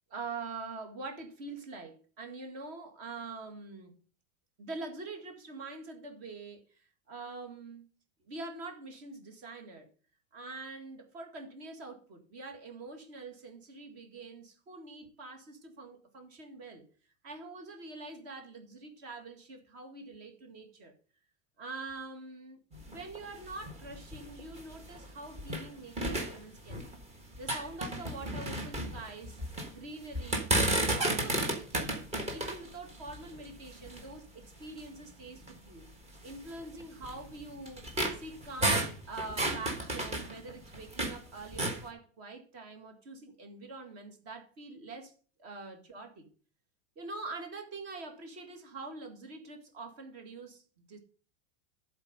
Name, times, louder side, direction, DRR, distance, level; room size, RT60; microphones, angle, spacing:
voice 1, 0.1-3.9 4.6-7.8 8.3-9.9 10.3-16.9 17.2-20.9 21.6-22.6 22.9-26.9 27.4-29.4 29.7-30.5 30.8-35.9 36.2-37.9 38.1-45.1 45.4-46.3 47.0-51.0, right 3 dB, 40° right, 1.9 m, -45 dB
sound 1, 22.7-25.7 26.0-27.0 27.3-29.7 30.1-34.2 34.8-34.9 35.4-35.5 36.3-41.2 41.5-41.8, right 1 dB, 15° right, 1.2 m, -33 dB
11.5 x 4.3 x 5.2 m
supercardioid pair, 165°, 39 cm